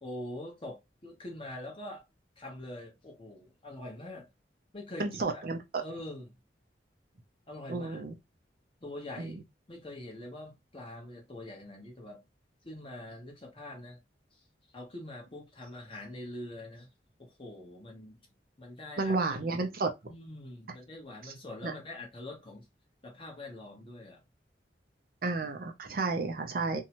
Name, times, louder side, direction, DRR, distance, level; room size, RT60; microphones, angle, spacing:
voice 1, 0.0-2.0 2.4-4.3 4.7-5.4 5.8-6.3 7.5-8.1 8.8-9.4 9.7-12.2 12.6-14.0 14.7-16.9 17.2-18.2 18.6-19.1 20.1-22.6 23.0-24.2, left 1 dB, 30° left, 0.9 m, -44 dB
voice 2, 5.0-5.6 7.7-8.1 9.2-9.4 19.0-19.9 21.6-21.7 25.2-26.8, right 3 dB, 55° right, 0.5 m, -31 dB
2.7 x 2.2 x 2.9 m
head